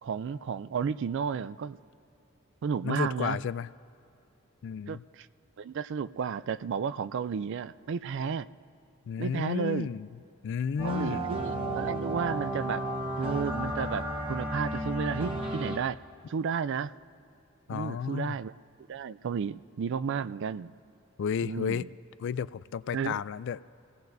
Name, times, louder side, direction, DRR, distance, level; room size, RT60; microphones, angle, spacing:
voice 1, 0.0-1.8 2.6-3.4 4.9-5.3 5.6-8.5 9.2-9.9 10.8-12.8 13.2-16.0 16.3-16.9 17.7-18.5 18.9-20.7 21.4-21.9 22.9-23.2, right 6 dB, 60° right, 16 dB, 0.3 m, -32 dB
voice 2, 2.8-3.7 4.6-5.0 9.1-10.1 10.4-11.3 17.7-18.4 21.2-21.9 22.2-23.6, left 7 dB, 60° left, 17 dB, 0.3 m, -32 dB
sound 1, 10.8-15.8, right 1 dB, 25° right, 1.2 m, -33 dB
29.0 x 17.0 x 2.6 m, 2.7 s
head